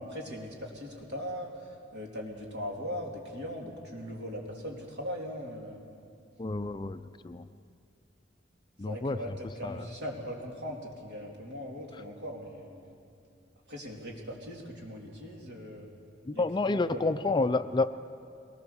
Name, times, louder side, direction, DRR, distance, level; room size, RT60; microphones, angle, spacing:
voice 1, 0.0-5.8 8.9-13.0 13.7-15.9 16.3-17.4, equal, 65° right, -1 dB, 3.3 m, -40 dB
voice 2, 6.4-7.5 8.8-9.2 9.6-9.8 16.3-17.9, left 3 dB, 25° left, 11 dB, 0.4 m, -29 dB
22.5 x 19.5 x 7.0 m, 2.5 s
head